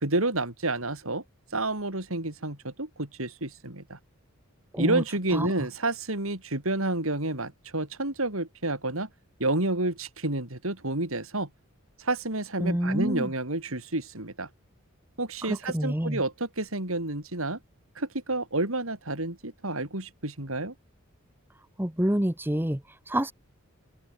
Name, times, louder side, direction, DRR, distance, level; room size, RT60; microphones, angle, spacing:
voice 1, 0.0-1.2 1.5-4.0 4.8-9.1 9.4-11.5 12.0-14.5 15.2-17.6 18.0-20.7, right 2 dB, 75° right, 4.7 m, -29 dB
voice 2, 12.6-13.3 15.4-16.2 21.8-23.3, right 1 dB, 10° right, 1.1 m, -28 dB
head